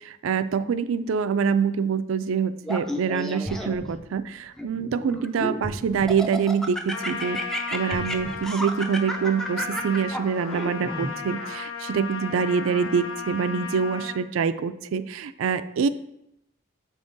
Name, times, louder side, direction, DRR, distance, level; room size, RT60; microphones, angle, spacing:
voice 1, 0.2-7.4 7.7-15.9, right 6 dB, 80° right, 13 dB, 0.3 m, -25 dB
Laughter, 2.6-3.9 4.6-5.6 6.1-11.1, equal, ahead, 0.4 m, -32 dB
sound 1, 3.4-5.1 5.6-7.2 7.8-9.5 10.0-10.1, equal, 40° left, 1.7 m, -40 dB
Trumpet, 6.9-14.2, left 5 dB, 90° left, 0.7 m, -35 dB
7.1 x 3.6 x 3.9 m, 0.83 s
head